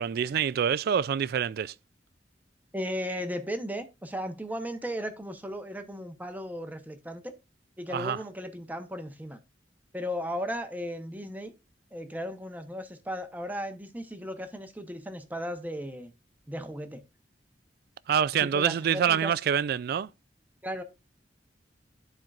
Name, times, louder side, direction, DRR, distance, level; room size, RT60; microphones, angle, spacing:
voice 1, 0.0-1.7 7.9-8.2 18.1-20.1, right 8 dB, 60° right, 0.3 m, -26 dB
voice 2, 2.7-7.3 7.8-9.4 9.9-11.5 11.9-16.1 16.5-17.0 18.4-19.3 20.6-20.8, equal, 10° right, 0.8 m, -36 dB
13.0 x 4.5 x 2.4 m
head